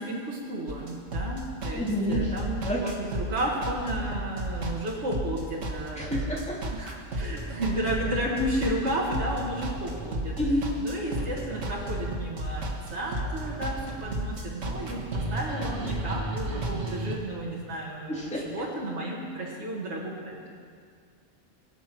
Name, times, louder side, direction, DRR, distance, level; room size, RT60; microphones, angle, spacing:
voice 1, 0.0-6.4 6.7-10.3 10.8-12.6 12.9-20.4, right 1 dB, 65° right, -4 dB, 2.1 m, -32 dB
sound 1, 0.7-17.1, right 1 dB, 80° right, 2.0 m, -33 dB
voice 2, 1.7-2.3 2.6-2.8 6.0-6.6 10.4-10.7 18.1-18.5, equal, 5° left, -5 dB, 2.6 m, -28 dB
22.0 x 7.5 x 6.1 m, 2.1 s
omnidirectional pair, 1.3 m